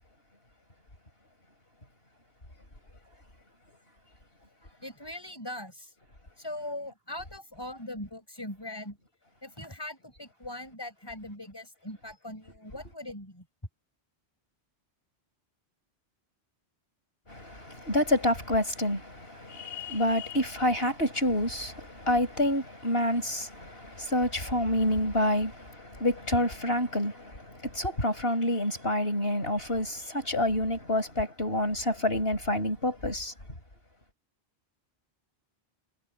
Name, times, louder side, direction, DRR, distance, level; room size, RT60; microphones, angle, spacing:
voice 1, 4.8-5.9 6.4-9.0 9.4-13.4, left 1 dB, 20° left, 6.4 m, -40 dB
voice 2, 17.3-33.3, left 1 dB, 65° left, 6.8 m, -28 dB
omnidirectional pair, 1.1 m